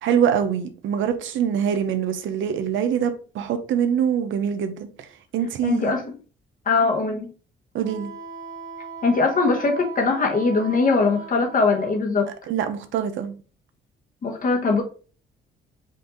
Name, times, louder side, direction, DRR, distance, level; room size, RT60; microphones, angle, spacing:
voice 1, 0.0-5.1 5.3-6.0 7.7-8.1 12.5-13.3, right 8 dB, 75° right, 0.8 m, -24 dB
voice 2, 5.6-6.0 6.7-7.3 9.0-12.3 14.2-14.8, left 4 dB, 45° left, 1.3 m, -21 dB
Wind instrument woodwind instrument, 7.8-12.0, right 5 dB, 40° right, 1.4 m, -38 dB
5.3 x 2.6 x 3.7 m
cardioid pair, 90°, 20 cm